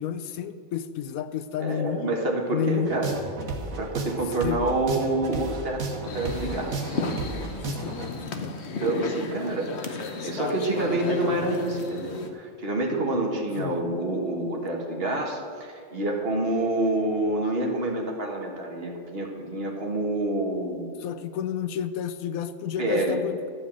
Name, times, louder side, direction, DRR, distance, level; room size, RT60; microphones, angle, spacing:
voice 1, 0.0-2.2 2.5-3.0 4.4-4.6 7.6-8.6 13.6-13.9 21.0-23.5, left 8 dB, 90° left, 12 dB, 1.1 m, -31 dB
voice 2, 1.6-3.2 3.8-7.0 8.8-20.9 22.8-23.2, right 2 dB, 45° right, 1 dB, 1.6 m, -27 dB
sound 1, 2.9-8.1, right 3 dB, 75° right, 1.7 m, -33 dB
sound 2, 6.1-12.3, left 3 dB, 55° left, 1.2 m, -33 dB
12.5 x 5.5 x 8.5 m, 2.2 s
omnidirectional pair, 1.4 m